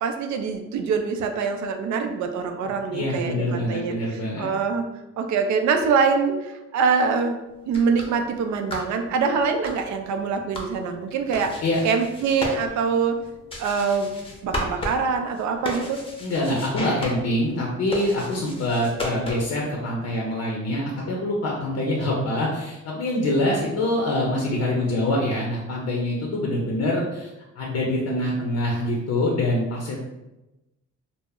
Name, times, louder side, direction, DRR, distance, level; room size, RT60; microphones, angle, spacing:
voice 1, 0.0-4.9 5.2-7.4 7.7-11.5 11.8-13.2 13.6-14.1 14.4-16.0, right 5 dB, 70° right, 6 dB, 0.4 m, -24 dB
voice 2, 2.9-4.5 11.6-11.8 16.2-27.3 27.6-30.0, left 1 dB, 60° left, -2 dB, 0.6 m, -25 dB
sound 1, 7.6-19.7, left 1 dB, 20° left, 0.6 m, -35 dB
2.1 x 2.0 x 3.5 m, 0.98 s
cardioid pair, 90°, 30 cm